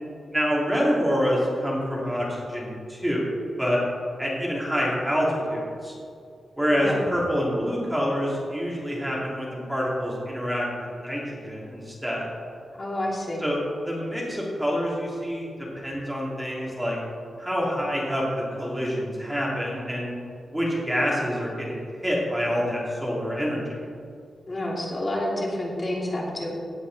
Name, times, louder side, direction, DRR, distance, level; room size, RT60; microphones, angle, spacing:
voice 1, 0.3-3.8 4.2-5.9 6.6-12.3 13.4-13.6 13.8-17.0 17.4-20.1 20.5-23.9, equal, 5° right, -5 dB, 3.1 m, -27 dB
voice 2, 6.7-7.0 12.8-13.4 24.5-26.5, left 1 dB, 30° left, -3 dB, 2.9 m, -29 dB
17.0 x 8.1 x 4.2 m, 2.3 s
wide cardioid pair, 115°, 0 cm